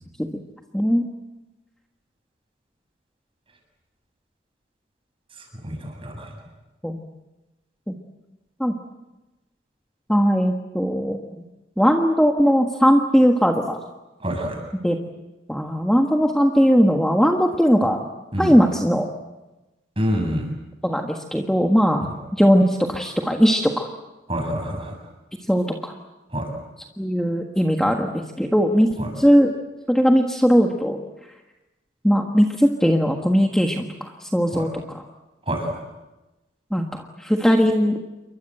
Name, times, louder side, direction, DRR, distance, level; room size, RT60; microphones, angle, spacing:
voice 1, 0.7-1.1 6.8-7.0 7.9-8.0 8.6-8.7 10.1-11.2 11.8-13.8 14.8-15.0 15.5-18.0 18.4-19.1 20.8-22.1 22.4-23.9 25.5-25.9 27.0-28.9 29.2-29.5 29.9-31.0 32.0-35.0 36.7-38.0, equal, 5° left, 1 dB, 1.5 m, -19 dB
voice 2, 5.4-6.3 14.2-14.6 18.3-18.5 20.0-20.5 22.0-22.1 24.3-24.9 26.3-26.5 29.0-29.1 34.5-34.7 35.5-35.7, equal, 25° right, 3 dB, 7.3 m, -27 dB
29.5 x 23.5 x 7.8 m, 1.1 s
head